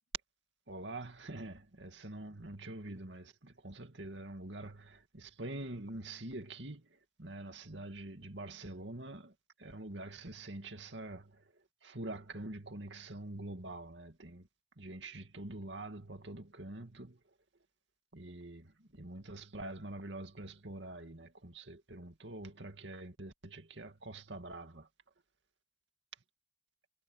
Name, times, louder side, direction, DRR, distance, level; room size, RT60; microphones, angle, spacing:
voice 1, 0.7-9.3 9.6-11.4 11.8-14.5 14.8-17.2 18.1-24.9, right 2 dB, 75° right, 2.3 m, -45 dB
head